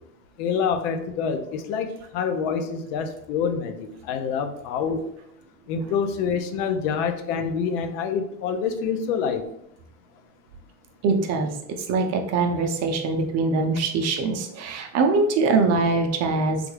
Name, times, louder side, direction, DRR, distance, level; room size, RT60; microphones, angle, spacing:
voice 1, 0.4-5.1 5.7-9.4, left 6 dB, 65° left, 8 dB, 0.6 m, -26 dB
voice 2, 11.0-16.6, right 3 dB, 40° right, 3 dB, 0.5 m, -23 dB
3.4 x 2.3 x 3.2 m, 0.75 s
supercardioid pair, 120°, 39 cm